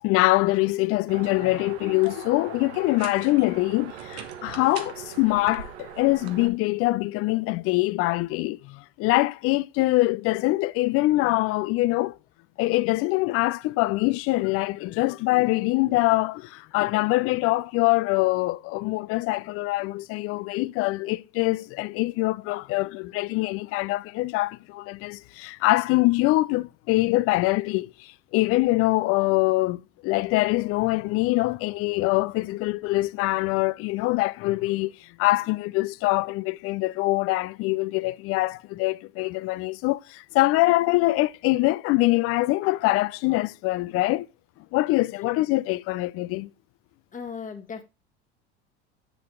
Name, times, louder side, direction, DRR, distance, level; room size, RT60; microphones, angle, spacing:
voice 1, 0.0-12.2 12.6-44.3 44.7-46.5, left 20 dB, 45° left, 0.4 m, -24 dB
sound 1, 1.1-6.5, right 8 dB, 80° right, 1.1 m, -40 dB
voice 2, 47.1-47.8, left 6 dB, 25° left, 1.4 m, -36 dB
7.5 x 6.9 x 3.7 m
hypercardioid pair, 85°, 32 cm